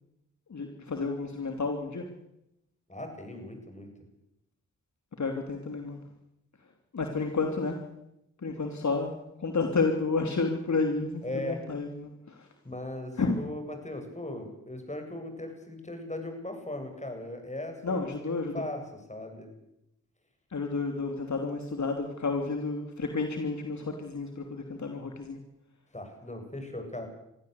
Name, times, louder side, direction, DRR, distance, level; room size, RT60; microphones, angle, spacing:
voice 1, 0.5-2.1 5.2-6.0 6.9-7.8 8.4-9.1 9.4-12.5 13.2-13.4 17.8-18.5 20.5-25.4, left 4 dB, 60° left, 4 dB, 3.0 m, -31 dB
voice 2, 2.9-3.9 11.2-11.7 12.6-19.5 25.9-27.1, left 1 dB, 20° left, 5 dB, 7.9 m, -38 dB
24.5 x 15.0 x 8.3 m, 0.83 s
supercardioid pair, 40°, 33 cm